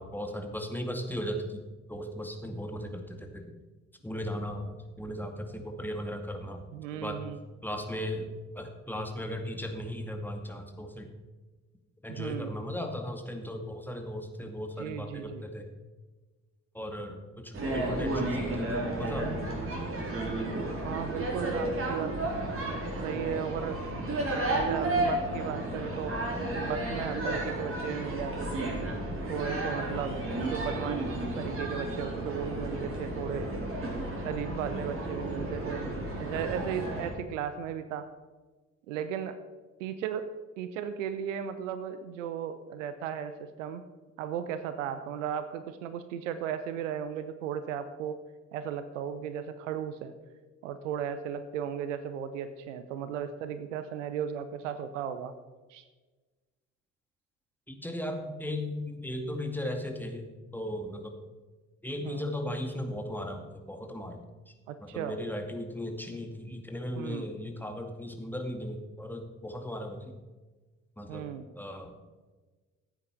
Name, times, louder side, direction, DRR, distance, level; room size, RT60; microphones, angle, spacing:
voice 1, 0.0-1.6 1.9-3.6 4.0-6.7 6.9-7.3 7.6-11.1 12.0-15.7 16.7-19.4 20.7-20.8 57.7-60.3 60.5-61.2 61.8-64.5 64.8-70.2 71.0-71.9, left 1 dB, 5° left, 4 dB, 2.1 m, -37 dB
voice 2, 6.7-7.4 12.1-12.5 14.8-15.4 20.8-22.1 23.0-23.8 24.5-26.2 26.6-28.6 29.3-31.0 31.4-33.5 34.2-35.9 36.2-38.1 38.9-39.4 39.8-40.3 40.6-43.8 44.2-48.2 48.5-50.1 50.6-55.3 55.7-55.8 62.0-62.2 64.7-65.2 67.0-67.2 71.1-71.4, right 8 dB, 70° right, 11 dB, 0.8 m, -36 dB
sound 1, 17.5-37.1, right 1 dB, 35° right, 4.0 m, -32 dB
15.0 x 8.9 x 5.8 m, 1.3 s
figure-of-eight pair, 45°, 38 cm